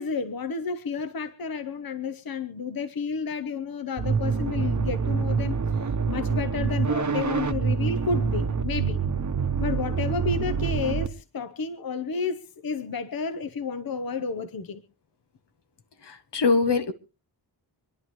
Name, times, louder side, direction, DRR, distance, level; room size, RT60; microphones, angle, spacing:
voice 1, 0.0-5.6 5.8-9.0 9.6-14.8, left 5 dB, 55° left, 1.0 m, -31 dB
sound 1, 4.0-11.1, right 6 dB, 45° right, 1.1 m, -26 dB
voice 2, 16.0-16.9, left 4 dB, 75° left, 1.3 m, -23 dB
26.5 x 11.0 x 3.1 m
wide cardioid pair, 115°, 42 cm